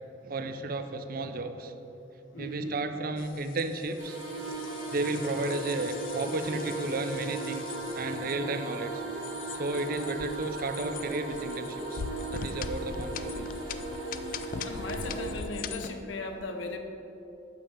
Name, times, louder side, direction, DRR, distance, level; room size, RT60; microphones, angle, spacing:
voice 1, 0.2-1.7 2.4-4.2 4.9-9.0 9.5-12.0 12.3-13.5, right 2 dB, 50° right, 8 dB, 0.5 m, -33 dB
voice 2, 2.3-2.8 14.6-16.8, left 2 dB, 90° left, 4 dB, 0.9 m, -37 dB
sound 1, 3.2-15.9, left 6 dB, 50° left, 0.3 m, -42 dB
sound 2, 4.0-15.4, right 2 dB, 70° right, 1.8 m, -37 dB
8.2 x 7.2 x 5.0 m, 2.9 s
head